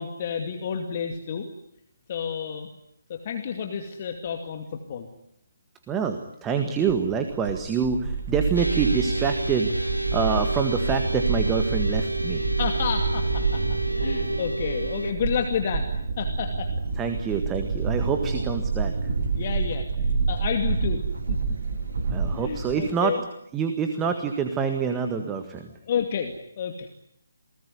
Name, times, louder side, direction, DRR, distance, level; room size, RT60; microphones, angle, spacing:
voice 1, 0.0-1.5 2.1-2.7 3.1-5.1 12.6-15.9 16.2-16.7 19.3-21.0 21.3-21.4 22.3-23.2 25.9-26.9, left 7 dB, 35° left, 5 dB, 2.4 m, -30 dB
voice 2, 5.9-12.5 16.9-19.1 22.1-23.2 23.5-25.8, right 6 dB, 10° right, 6 dB, 1.7 m, -27 dB
sound 1, 6.9-22.9, right 4 dB, 50° right, 3.8 m, -28 dB
sound 2, 8.6-15.1, right 1 dB, 90° right, 1.2 m, -31 dB
28.5 x 20.0 x 9.7 m, 0.76 s
figure-of-eight pair, 145°, 0 cm